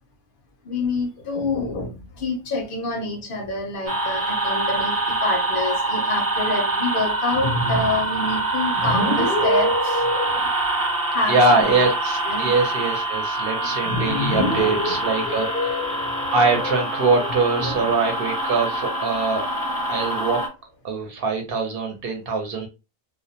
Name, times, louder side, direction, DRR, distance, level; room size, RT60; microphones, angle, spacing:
voice 1, 0.7-10.5 11.1-11.9 12.3-12.5 13.6-16.8 17.2-17.3 17.6-17.9, left 2 dB, 60° left, 0.7 m, -26 dB
sound 1, 3.9-20.5, right 2 dB, 25° right, 0.6 m, -25 dB
voice 2, 11.3-15.5 16.3-19.4 19.9-20.4 20.8-22.7, right 3 dB, 60° right, 0.9 m, -22 dB
2.2 x 2.1 x 2.6 m
omnidirectional pair, 1.2 m